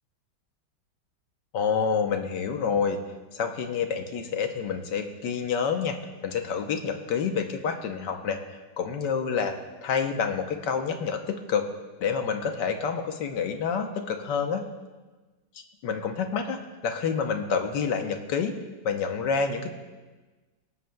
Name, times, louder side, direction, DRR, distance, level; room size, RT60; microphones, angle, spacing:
voice 1, 1.5-3.0 3.3-6.0 6.2-8.4 8.8-9.6 9.8-11.6 12.0-14.7 15.8-18.5 18.8-19.7, left 6 dB, 70° left, 5 dB, 1.5 m, -28 dB
24.0 x 8.4 x 2.3 m, 1.3 s
omnidirectional pair, 2.0 m